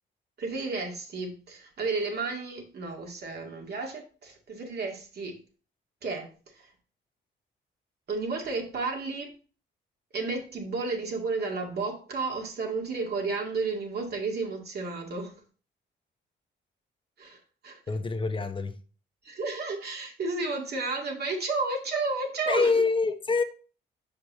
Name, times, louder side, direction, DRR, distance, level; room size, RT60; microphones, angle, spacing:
voice 1, 0.4-5.4 6.0-6.7 8.1-9.3 10.1-15.3 17.2-17.4 17.6-17.8 19.2-22.8, right 3 dB, 55° right, 2.1 m, -32 dB
voice 2, 17.9-18.7 22.5-23.4, left 4 dB, 25° left, 0.9 m, -25 dB
5.9 x 5.1 x 3.6 m
cardioid pair, 90°, 20 cm